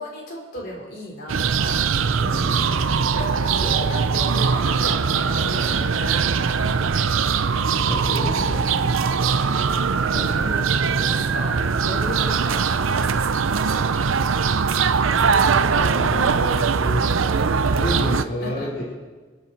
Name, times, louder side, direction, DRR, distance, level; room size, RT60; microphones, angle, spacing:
voice 1, 0.0-1.9 3.1-7.0 10.4-13.4 18.0-18.7, left 1 dB, 55° left, -2 dB, 5.0 m, -35 dB
sound 1, 1.3-18.2, right 5 dB, 85° right, 0.7 m, -21 dB
voice 2, 2.2-2.8 5.9-6.1 7.8-9.0 10.1-10.6 15.4-17.4 17.7-18.8, left 1 dB, 75° left, -9 dB, 4.8 m, -31 dB
28.5 x 9.8 x 4.6 m, 1.4 s
head